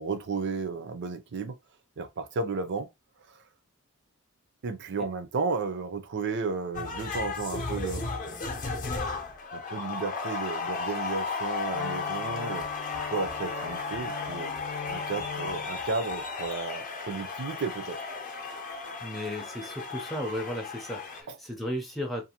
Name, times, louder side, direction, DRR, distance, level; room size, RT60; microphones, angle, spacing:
voice 1, 0.0-1.6 2.0-2.9 3.3-3.4 4.6-8.1 9.5-12.7 13.1-14.5 14.9-18.0 21.3-21.4, right 4 dB, 55° right, 0.5 m, -33 dB
sound 1, 6.7-21.2, left 4 dB, 40° left, 0.6 m, -34 dB
Wind instrument woodwind instrument, 11.7-15.8, left 5 dB, 80° left, 0.7 m, -41 dB
voice 2, 19.0-22.2, equal, ahead, 0.5 m, -35 dB
2.6 x 2.4 x 2.8 m
head